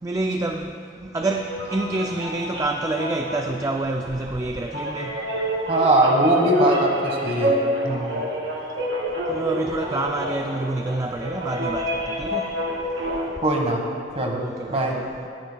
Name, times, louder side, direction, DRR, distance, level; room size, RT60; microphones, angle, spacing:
voice 1, 0.0-0.7 1.0-5.1 7.8-8.1 9.3-11.9 12.2-12.5 14.4-15.3, right 2 dB, 15° right, 0.3 m, -27 dB
sound 1, 1.2-13.3, equal, 75° right, 2.0 m, -28 dB
voice 2, 5.7-7.5 13.4-13.8 14.1-14.4 14.7-15.0, right 1 dB, 35° right, 1.3 m, -20 dB
21.0 x 9.3 x 2.2 m
head